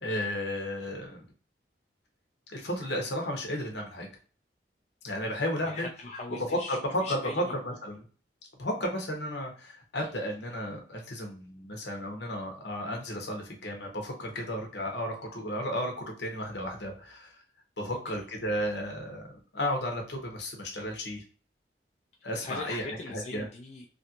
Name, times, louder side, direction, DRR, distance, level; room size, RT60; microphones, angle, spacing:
voice 1, 0.0-1.2 2.5-4.1 5.0-5.9 6.5-8.0 8.6-17.4 17.8-19.2 19.5-21.2 22.2-23.5, equal, 75° left, 1 dB, 1.0 m, -33 dB
voice 2, 5.6-7.5 18.1-18.2 22.4-23.8, left 3 dB, 40° left, -1 dB, 0.4 m, -40 dB
3.0 x 2.5 x 2.9 m, 0.40 s
head